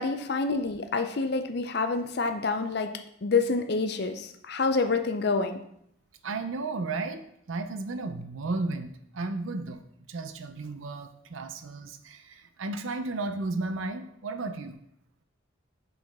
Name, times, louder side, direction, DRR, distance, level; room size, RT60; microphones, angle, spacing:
voice 1, 0.0-2.9 3.2-5.6, left 4 dB, 50° left, 8 dB, 0.5 m, -27 dB
voice 2, 6.2-9.8 10.1-14.8, right 3 dB, 80° right, 8 dB, 0.6 m, -34 dB
5.7 x 5.2 x 3.5 m, 0.72 s
head